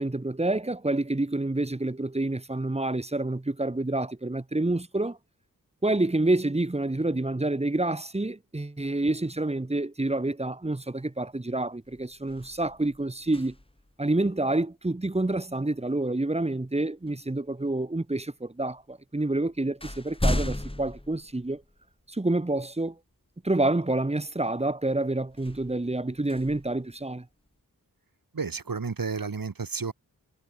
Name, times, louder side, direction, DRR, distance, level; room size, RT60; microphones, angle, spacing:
voice 1, 0.0-5.2 5.8-13.5 14.0-21.6 22.1-23.0 23.4-27.3, right 2 dB, 20° right, 1.1 m, -28 dB
sound 1, 11.3-11.5 11.8-13.9 16.1-16.3 17.1-17.8 18.7-18.8 19.2-22.0 22.6-22.7 25.3-27.5, left 1 dB, 15° left, 4.5 m, -35 dB
voice 2, 28.3-29.9, right 5 dB, 70° right, 2.6 m, -31 dB
wide cardioid pair, 75°, 35 cm